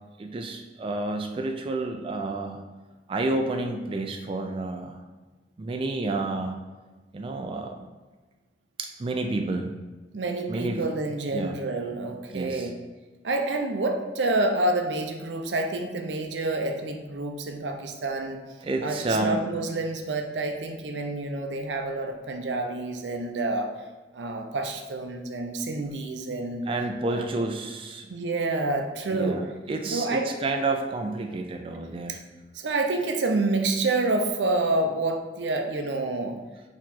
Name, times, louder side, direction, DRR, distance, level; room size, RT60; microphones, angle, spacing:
voice 1, 0.2-2.6 3.1-5.0 5.6-6.5 7.1-7.8 8.8-9.8 10.5-10.8 11.3-11.6 12.3-12.7 18.6-19.4 26.7-28.1 29.1-29.4 29.7-32.2, right 2 dB, 30° right, 4 dB, 0.3 m, -30 dB
voice 2, 10.1-12.8 13.2-18.4 18.8-23.7 24.1-26.6 27.1-27.3 28.1-29.4 29.9-30.3 32.1-32.2 32.5-36.4, right 2 dB, 90° right, 4 dB, 0.6 m, -28 dB
4.3 x 3.0 x 4.1 m, 1.2 s
head